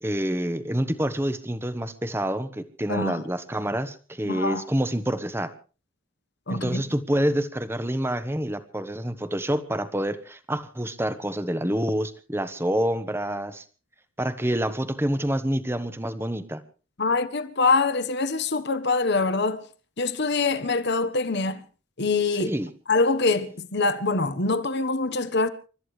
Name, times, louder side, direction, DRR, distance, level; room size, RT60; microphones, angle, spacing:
voice 1, 0.0-5.5 6.5-13.6 14.2-16.6 22.4-22.7, right 1 dB, 10° right, 1.2 m, -27 dB
voice 2, 2.9-3.2 4.2-4.6 6.5-6.8 17.0-19.7 20.0-21.6 22.0-22.5 22.9-25.5, left 3 dB, 50° left, 1.2 m, -24 dB
29.0 x 13.5 x 3.3 m
head